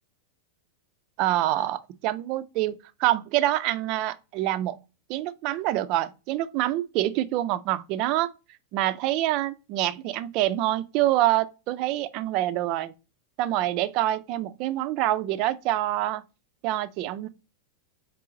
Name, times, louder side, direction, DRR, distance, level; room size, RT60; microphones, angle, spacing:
voice 1, 1.2-4.8 5.1-8.3 8.7-12.9 13.4-16.2 16.6-17.3, right 14 dB, 40° right, 0.3 m, -26 dB
4.6 x 3.0 x 2.5 m
figure-of-eight pair, 90°, 0 cm